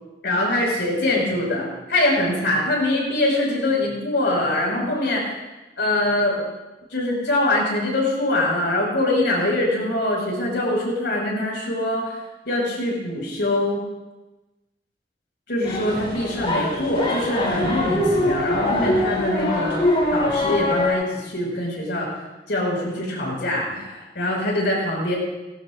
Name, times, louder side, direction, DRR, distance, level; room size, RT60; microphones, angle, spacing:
voice 1, 0.2-5.2 5.8-6.4 6.9-12.2 12.5-13.8 15.5-19.8 20.1-22.1 22.5-25.2, left 1 dB, 70° left, -3 dB, 5.6 m, -23 dB
sound 1, 15.6-20.9, left 1 dB, 30° left, 3.3 m, -23 dB
18.0 x 17.0 x 2.6 m, 1.1 s
head